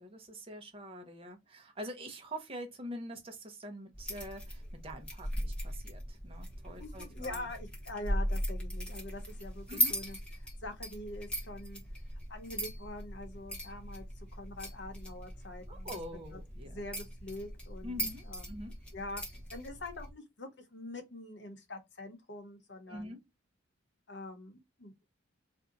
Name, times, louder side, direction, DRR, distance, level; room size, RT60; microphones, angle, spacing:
voice 1, 0.0-7.5 9.7-9.9 15.7-16.8 17.8-18.7 22.9-23.2, equal, 25° right, 0.7 m, -45 dB
sound 1, 3.9-20.1, equal, 5° left, 0.8 m, -39 dB
voice 2, 6.8-11.8 12.3-14.1 14.3-16.0 16.6-18.6 18.9-19.2 19.5-23.1 24.1-24.9, left 2 dB, 55° left, 0.9 m, -44 dB
2.6 x 2.3 x 3.7 m
head